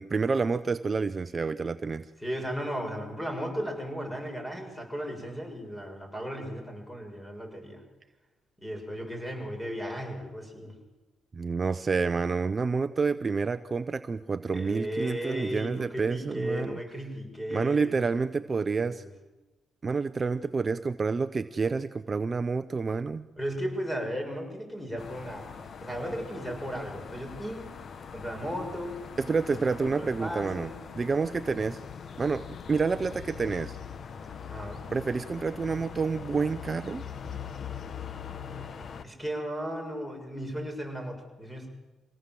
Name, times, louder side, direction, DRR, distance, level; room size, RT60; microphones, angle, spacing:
voice 1, 0.0-2.1 11.3-16.8 17.5-19.0 19.8-23.3 29.2-31.8 32.2-33.8 34.9-37.0, right 4 dB, 35° right, 12 dB, 0.7 m, -29 dB
voice 2, 2.2-7.8 8.6-10.7 14.5-18.1 18.6-19.1 23.4-27.7 28.1-29.0 29.5-30.8 34.5-34.9 39.0-41.7, equal, 10° left, 3 dB, 6.7 m, -36 dB
sound 1, 25.0-39.0, left 7 dB, 50° left, 1.2 m, -42 dB
24.5 x 18.0 x 7.6 m, 1.1 s
cardioid pair, 90°, 0 cm